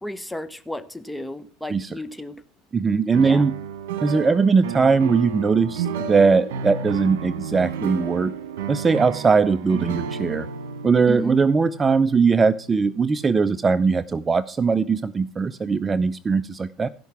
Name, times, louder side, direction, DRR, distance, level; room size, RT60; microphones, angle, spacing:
voice 1, 0.0-2.4 3.2-3.5 11.1-11.4, equal, 5° left, 12 dB, 1.1 m, -32 dB
voice 2, 2.7-3.5 4.0-8.3 8.7-10.5 10.8-16.9, right 5 dB, 25° right, 16 dB, 0.5 m, -20 dB
sound 1, 3.1-13.1, right 6 dB, 85° right, 1.5 m, -32 dB
15.5 x 5.7 x 5.8 m, 0.39 s
supercardioid pair, 90°, 0 cm